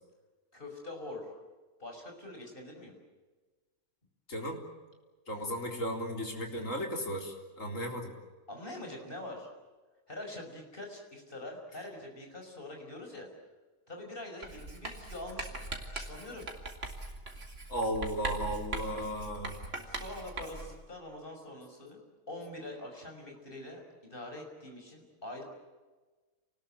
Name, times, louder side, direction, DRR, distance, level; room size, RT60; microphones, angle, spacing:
voice 1, 0.5-1.3 1.8-2.9 8.5-9.5 10.1-13.3 13.9-15.6 15.9-16.5 19.9-25.4, left 1 dB, 35° left, 2 dB, 6.0 m, -44 dB
voice 2, 4.3-4.6 5.3-8.1 17.7-19.5, equal, 55° left, 2 dB, 4.3 m, -35 dB
Writing, 14.4-20.8, right 2 dB, 50° right, 3.3 m, -41 dB
29.0 x 20.0 x 9.0 m, 1.3 s
omnidirectional pair, 1.6 m